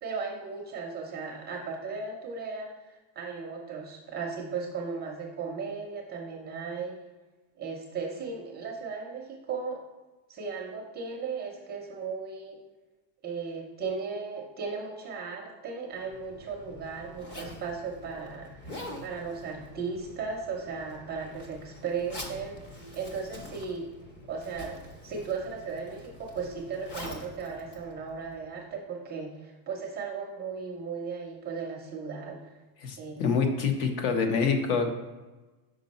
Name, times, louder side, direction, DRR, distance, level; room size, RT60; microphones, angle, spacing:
voice 1, 0.0-7.0 7.6-9.8 10.3-12.6 13.2-18.7 19.0-22.6 22.9-23.9 24.3-32.6 33.0-33.2, right 5 dB, 20° right, 0 dB, 0.4 m, -36 dB
Zipper (clothing), 16.0-28.6, left 1 dB, 25° left, 0.6 m, -46 dB
voice 2, 32.8-34.9, left 5 dB, 65° left, 6 dB, 1.0 m, -26 dB
5.2 x 5.0 x 4.1 m, 1.2 s
cardioid pair, 165°, 49 cm